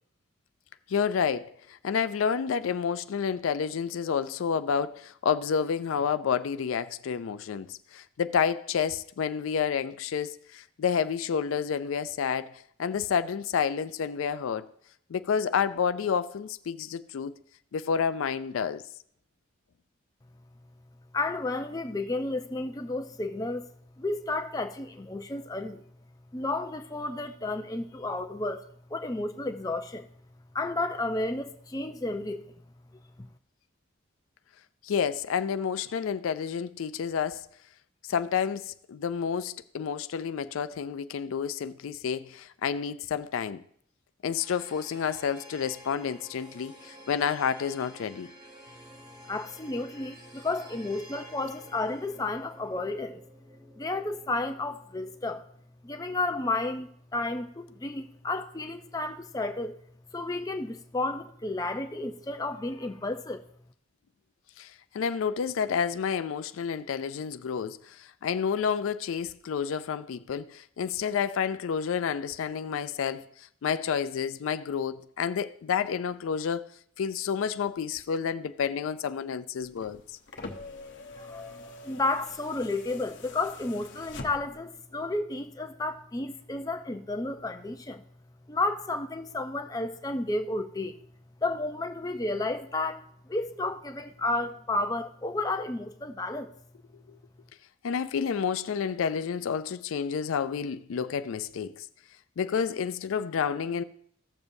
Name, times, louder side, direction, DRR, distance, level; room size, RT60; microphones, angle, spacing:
voice 1, 0.9-12.5 12.8-14.7 15.1-17.3 17.7-18.8 34.8-37.5 38.1-43.6 44.2-48.3 64.6-76.7 77.0-80.0 97.8-101.9 102.4-103.8, left 7 dB, 85° left, 0.4 m, -29 dB
voice 2, 21.1-23.7 24.0-25.8 26.3-30.1 30.5-32.4 33.2-33.3 49.3-53.2 53.8-55.4 55.8-59.8 60.1-63.4 81.2-88.0 88.5-91.0 91.4-96.5, left 2 dB, 20° left, 0.5 m, -32 dB
sound 1, 44.3-55.4, equal, 35° right, 1.7 m, -51 dB
sound 2, 79.6-84.7 86.0-86.1, left 3 dB, 60° left, 0.8 m, -45 dB
15.5 x 6.9 x 2.7 m
head